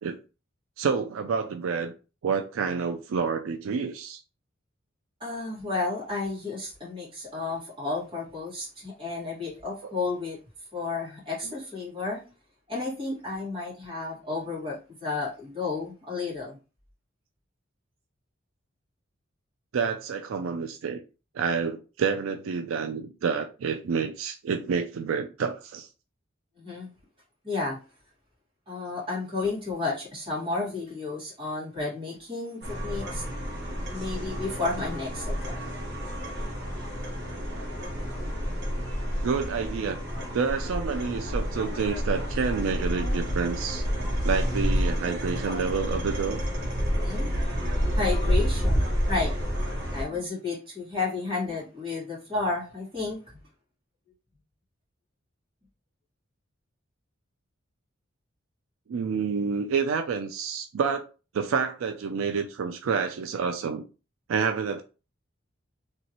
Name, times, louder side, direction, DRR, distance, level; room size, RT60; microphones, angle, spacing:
voice 1, 0.8-1.9 2.2-4.2 9.8-9.9 19.7-21.0 21.3-25.9 39.2-40.0 40.3-43.8 44.2-46.4 58.9-61.0 61.3-63.8 64.3-64.8, right 5 dB, 85° right, 0.4 m, -28 dB
voice 2, 5.2-10.4 10.7-12.2 12.7-16.6 26.6-26.9 27.4-27.8 28.7-33.2 33.8-35.6 46.9-47.3 47.9-49.3 49.9-53.4, left 3 dB, 25° right, 1.7 m, -32 dB
sound 1, 32.6-50.0, equal, 55° right, 1.1 m, -29 dB
3.0 x 2.7 x 2.8 m
head